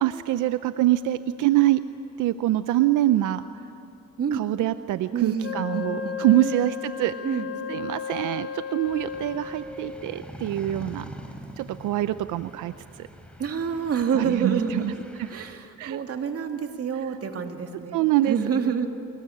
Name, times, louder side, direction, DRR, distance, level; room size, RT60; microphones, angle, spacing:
voice 1, 0.0-1.8 2.2-3.4 4.3-7.1 7.7-11.1 11.6-13.1 14.1-14.9 15.2-15.3 15.8-16.0 17.9-18.4, right 14 dB, 90° right, 12 dB, 0.7 m, -24 dB
voice 2, 5.1-6.2 6.4-6.7 7.2-7.5 13.4-14.9 15.3-18.9, right 6 dB, 50° right, 5 dB, 2.5 m, -28 dB
Wind instrument woodwind instrument, 5.4-10.0, left 8 dB, 50° left, 2.3 m, -34 dB
sound 1, 8.8-15.5, equal, 5° left, 3.9 m, -44 dB
24.0 x 21.5 x 9.9 m, 2.7 s
cardioid pair, 90°, 30 cm